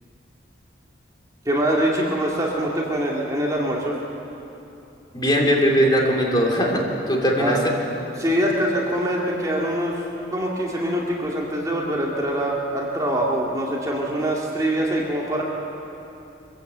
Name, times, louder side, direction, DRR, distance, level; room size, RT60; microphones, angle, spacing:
voice 1, 1.4-3.9 7.4-7.6 8.2-9.9 10.3-15.4, right 1 dB, 20° right, -3 dB, 2.3 m, -24 dB
voice 2, 5.1-7.7, equal, 25° left, -1 dB, 3.1 m, -20 dB
24.5 x 16.0 x 8.1 m, 2.9 s
head